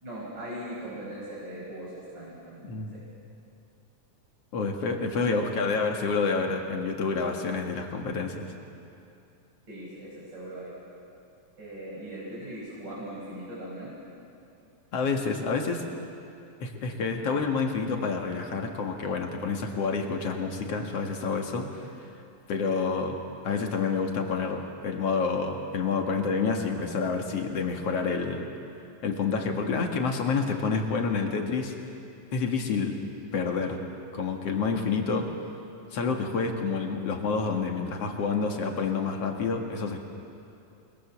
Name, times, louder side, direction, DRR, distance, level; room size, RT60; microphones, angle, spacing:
voice 1, 0.0-2.7 2.9-3.0 5.2-5.4 9.7-10.7 11.6-13.9, right 1 dB, 30° right, -7 dB, 6.0 m, -39 dB
voice 2, 2.6-3.0 4.5-8.5 14.9-15.9 16.6-21.9 22.5-23.2 23.4-28.5 29.0-31.7 32.3-33.0 33.3-33.8 34.1-35.3 35.9-40.0, left 4 dB, 50° left, 3 dB, 2.4 m, -28 dB
28.5 x 21.5 x 7.4 m, 2.6 s
omnidirectional pair, 4.0 m